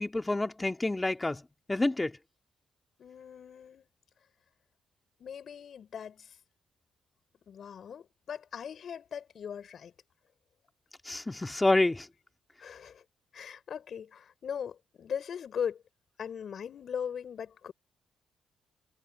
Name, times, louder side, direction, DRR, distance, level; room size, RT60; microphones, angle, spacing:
voice 1, 0.0-1.4 1.7-2.2 11.1-12.1, left 2 dB, 15° left, 2.0 m, -28 dB
voice 2, 3.0-3.9 5.2-6.4 7.5-9.9 12.6-13.0 13.3-15.8 16.2-17.7, left 7 dB, 55° left, 5.4 m, -39 dB
cardioid pair, 90°, 0 cm